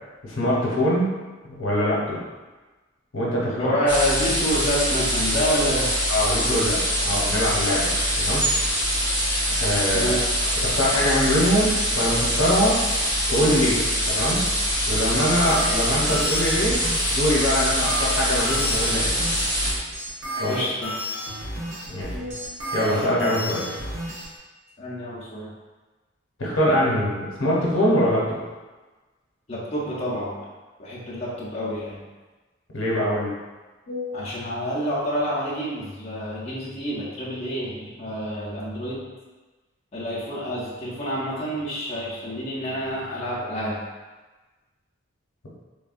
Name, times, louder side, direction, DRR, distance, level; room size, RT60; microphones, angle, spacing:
voice 1, 0.2-1.1 1.4-2.2 3.1-3.8 6.1-8.4 9.6-10.1 10.6-12.8 13.3-13.8 14.1-14.5 14.9-16.8 17.0-19.2 20.4-20.5 21.9-22.3 22.7-23.6 26.4-28.4 32.7-33.3 33.9-34.1, equal, 80° left, -5 dB, 0.8 m, -23 dB
voice 2, 3.5-5.9 9.9-10.2 20.5-20.9 24.8-25.5 29.5-30.4 30.8-32.0 34.1-39.1 39.9-43.8, equal, 30° left, -8 dB, 0.6 m, -28 dB
sound 1, 3.9-19.7, equal, 5° right, 1.3 m, -24 dB
sound 2, 14.9-24.2, equal, 65° right, 0.7 m, -32 dB
3.4 x 2.2 x 2.4 m, 1.2 s
head